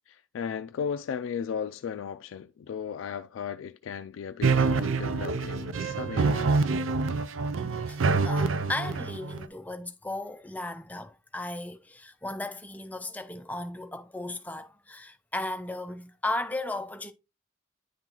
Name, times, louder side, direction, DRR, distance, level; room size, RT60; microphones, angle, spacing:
voice 1, 0.1-6.7, left 7 dB, 85° left, 0.3 m, -36 dB
sound 1, 4.4-9.4, right 4 dB, 85° right, 0.5 m, -26 dB
voice 2, 7.9-17.1, left 2 dB, 10° left, 0.4 m, -36 dB
9.7 x 3.8 x 2.9 m
head